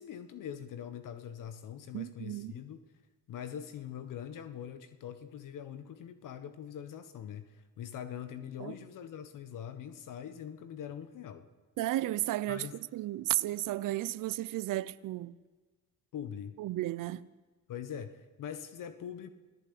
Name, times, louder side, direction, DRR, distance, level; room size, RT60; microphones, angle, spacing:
voice 1, 0.0-2.8 3.3-11.5 12.5-12.8 16.1-16.5 17.7-19.3, left 9 dB, 70° left, 1.4 m, -43 dB
voice 2, 1.9-2.5 8.6-8.7 11.8-15.4 16.6-17.3, right 15 dB, 70° right, 0.7 m, -33 dB
27.0 x 16.5 x 8.7 m
supercardioid pair, 55°, 33 cm